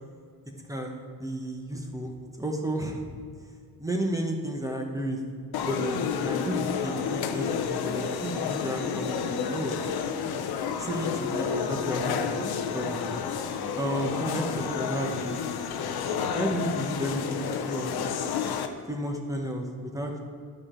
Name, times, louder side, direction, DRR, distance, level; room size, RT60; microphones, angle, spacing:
voice 1, 0.7-3.0 3.8-5.2 5.6-9.8 10.8-13.2 13.8-15.4 16.3-18.0 18.9-20.2, right 1 dB, 10° right, 1 dB, 0.9 m, -32 dB
sound 1, 5.5-18.7, left 6 dB, 85° left, 0.7 m, -30 dB
11.5 x 5.0 x 4.3 m, 2.1 s
cardioid pair, 140°, 36 cm